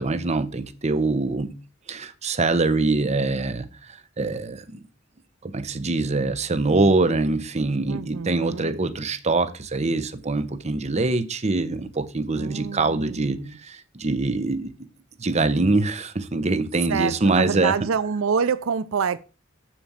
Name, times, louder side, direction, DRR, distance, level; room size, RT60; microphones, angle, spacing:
voice 1, 0.0-1.6 1.9-4.8 5.4-14.7 15.2-17.7, right 3 dB, 35° right, 0.8 m, -24 dB
voice 2, 7.9-8.8 12.4-13.5 16.9-19.2, right 6 dB, 80° right, 0.5 m, -27 dB
7.2 x 5.1 x 7.3 m
head